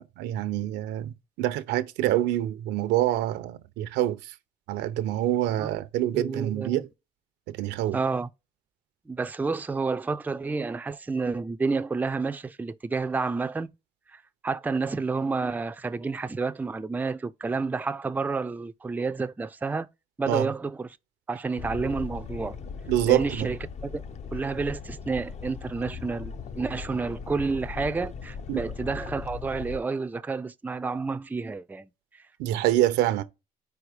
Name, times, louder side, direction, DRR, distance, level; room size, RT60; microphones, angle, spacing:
voice 1, 0.2-4.3 4.7-6.9 7.5-8.0 20.3-20.5 22.9-23.5 28.5-28.6 32.4-33.2, right 13 dB, 90° right, 0.7 m, -26 dB
voice 2, 6.1-6.8 7.9-8.3 9.1-13.7 14.1-19.9 20.2-20.9 21.3-22.6 23.1-24.0 24.3-32.2, right 4 dB, 10° right, 0.4 m, -30 dB
sound 1, 21.6-29.8, left 6 dB, 40° left, 0.7 m, -38 dB
4.7 x 4.7 x 4.9 m
cardioid pair, 110°, 17 cm